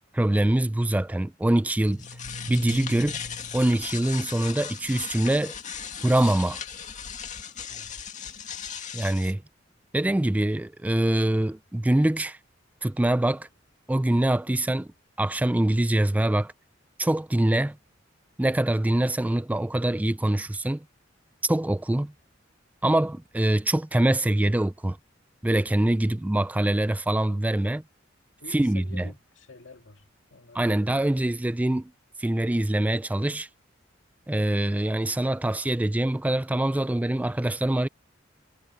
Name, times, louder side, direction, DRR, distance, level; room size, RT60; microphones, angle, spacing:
voice 1, 0.0-2.0 2.5-3.2 3.5-5.5 6.0-6.6 8.9-9.4 9.9-12.4 12.8-13.5 13.9-14.9 15.2-16.5 17.0-17.8 18.4-20.8 21.4-22.1 22.8-25.0 25.4-27.8 28.5-29.1 30.5-31.9 32.2-33.5 34.3-37.9, right 1 dB, 10° right, 0.3 m, -24 dB
sound 1, 1.8-9.3, left 6 dB, 40° left, 2.2 m, -37 dB
voice 2, 7.7-8.0 28.4-30.0 30.3-31.0, left 2 dB, 75° left, 2.4 m, -49 dB
head